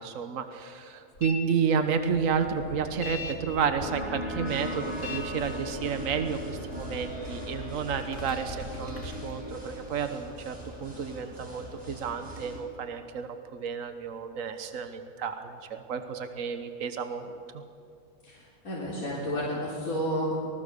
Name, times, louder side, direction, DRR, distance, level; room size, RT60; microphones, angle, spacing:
voice 1, 0.0-10.5 10.8-17.6, right 6 dB, 70° right, 8 dB, 1.5 m, -31 dB
sound 1, 1.2-1.4 1.7-9.3, left 2 dB, 60° left, 2.8 m, -41 dB
sound 2, 3.8-11.1, left 1 dB, 45° left, 3.1 m, -41 dB
sound 3, 4.4-12.6, equal, 15° right, 6.8 m, -43 dB
voice 2, 18.2-20.4, equal, 80° left, -6 dB, 4.1 m, -31 dB
26.0 x 20.0 x 6.8 m, 2.6 s
omnidirectional pair, 1.5 m